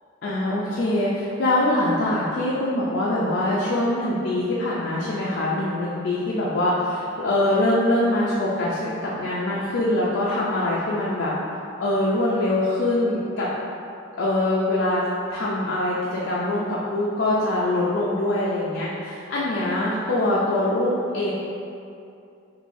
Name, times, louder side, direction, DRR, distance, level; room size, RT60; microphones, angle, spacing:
voice 1, 0.2-11.3 11.8-13.5 14.1-15.0 15.3-21.3, left 1 dB, 50° left, -6 dB, 0.3 m, -23 dB
3.8 x 2.6 x 2.5 m, 2.6 s
head